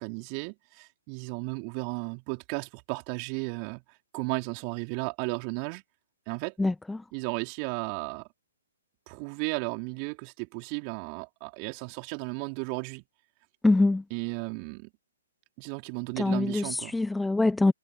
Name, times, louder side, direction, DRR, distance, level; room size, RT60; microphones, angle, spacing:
voice 1, 0.0-5.8 6.3-6.5 7.1-8.3 9.1-13.0 14.1-14.9 15.6-17.0, right 36 dB, 35° right, 4.4 m, -34 dB
voice 2, 13.6-14.0 16.2-17.7, left 2 dB, 5° left, 0.8 m, -23 dB
figure-of-eight pair, 125°, 0 cm